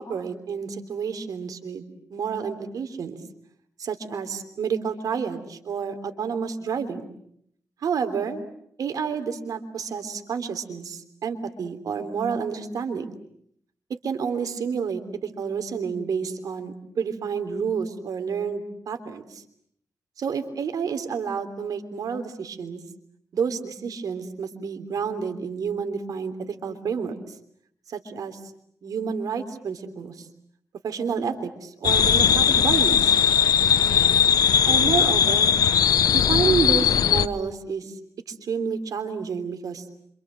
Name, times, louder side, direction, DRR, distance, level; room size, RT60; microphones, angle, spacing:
voice 1, 0.0-3.2 3.8-7.0 7.8-8.4 8.8-13.1 13.9-19.4 20.2-22.8 23.3-27.2 27.9-28.4 28.8-30.3 30.8-33.1 34.6-35.5 36.1-38.0 38.3-39.8, right 6 dB, 75° right, 8 dB, 3.4 m, -29 dB
sound 1, 31.8-37.3, left 8 dB, 85° left, 1.1 m, -19 dB
28.0 x 26.5 x 7.6 m, 0.69 s
cardioid pair, 90°, 6 cm